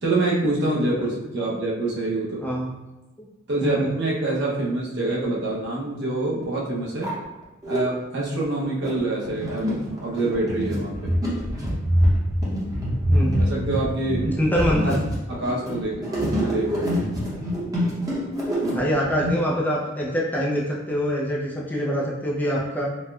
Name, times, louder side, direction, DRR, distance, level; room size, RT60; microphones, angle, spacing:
voice 1, 0.0-2.5 3.5-7.1 7.7-11.1 13.4-14.2 14.8-15.0 15.3-16.9, right 2 dB, 60° right, -4 dB, 0.8 m, -26 dB
sound 1, 5.6-5.7 6.4-6.5 6.8-7.8 8.4-19.3, equal, 20° right, 0.8 m, -25 dB
voice 2, 13.1-13.4 14.2-14.9 18.7-22.9, equal, 10° left, -4 dB, 0.4 m, -24 dB
4.2 x 2.1 x 2.3 m, 1.0 s
head